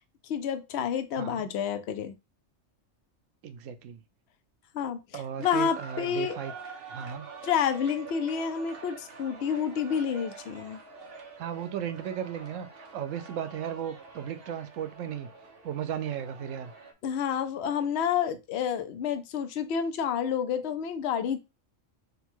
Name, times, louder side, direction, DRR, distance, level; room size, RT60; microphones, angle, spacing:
voice 1, 0.3-2.1 4.7-5.0 5.4-6.4 7.4-10.8 17.0-21.4, left 7 dB, 65° left, 0.8 m, -29 dB
voice 2, 1.2-1.5 3.4-4.0 5.1-6.5 6.9-7.3 11.4-15.3 15.6-16.7, right 9 dB, 85° right, 1.0 m, -35 dB
sound 1, 5.4-16.9, right 4 dB, 55° right, 0.9 m, -46 dB
3.9 x 2.3 x 4.4 m
omnidirectional pair, 1.3 m